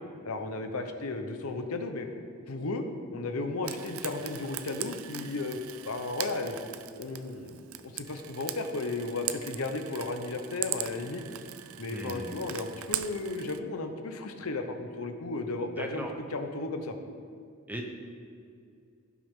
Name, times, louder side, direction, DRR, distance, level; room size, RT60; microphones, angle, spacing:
voice 1, 0.2-2.1 2.5-2.8 3.1-5.6 5.8-6.6 7.0-11.2 11.8-16.0 16.3-17.0, left 3 dB, 80° left, 6 dB, 0.9 m, -34 dB
Frying (food), 3.6-13.6, right 12 dB, 70° right, 0.4 m, -40 dB
voice 2, 11.9-12.3 15.8-16.2 17.7-17.9, right 1 dB, 10° right, 1 dB, 0.9 m, -37 dB
16.0 x 6.1 x 3.7 m, 2.3 s
head